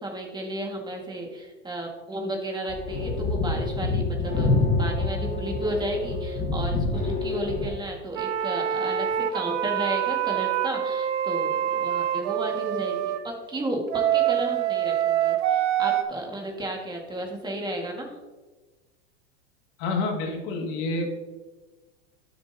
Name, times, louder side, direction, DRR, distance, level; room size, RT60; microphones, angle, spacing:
voice 1, 0.0-18.1, right 1 dB, 10° right, 1 dB, 1.8 m, -33 dB
sound 1, 2.7-7.7, left 3 dB, 20° left, 1.4 m, -26 dB
sound 2, 8.2-13.2 13.9-16.0, right 11 dB, 65° right, 0.9 m, -25 dB
voice 2, 19.8-21.1, left 3 dB, 55° left, 1 dB, 2.1 m, -28 dB
12.0 x 6.9 x 2.8 m, 1.2 s
supercardioid pair, 130°, 37 cm